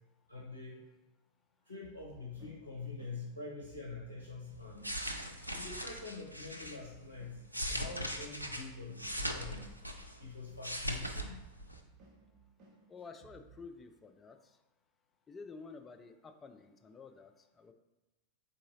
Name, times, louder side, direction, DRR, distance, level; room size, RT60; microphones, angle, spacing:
voice 1, 0.3-0.8 1.7-4.9 5.5-7.4 7.7-9.7 10.2-11.4, left 4 dB, 80° left, -3 dB, 0.6 m, -45 dB
sound 1, 1.8-13.7, right 5 dB, 35° right, 0.8 m, -61 dB
sound 2, 4.6-6.8 7.3-10.2 10.5-11.3 11.6-11.8, equal, 90° right, 0.3 m, -39 dB
voice 2, 12.9-14.6 15.3-17.7, left 4 dB, 20° left, 7 dB, 0.3 m, -51 dB
3.8 x 3.7 x 2.7 m, 1.0 s
figure-of-eight pair, 90°, 0 cm